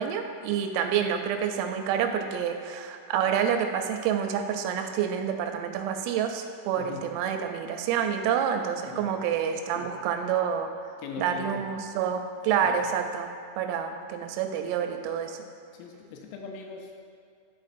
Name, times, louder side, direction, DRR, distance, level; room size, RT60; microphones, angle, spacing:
voice 1, 0.0-10.7 11.2-13.3 13.6-15.4, right 8 dB, 85° right, 5 dB, 3.2 m, -28 dB
voice 2, 6.8-7.1 8.8-9.2 9.7-10.0 11.0-11.7 12.5-12.8 15.7-17.0, left 5 dB, 85° left, 1 dB, 3.3 m, -41 dB
11.5 x 4.3 x 2.5 m, 2.3 s
omnidirectional pair, 5.9 m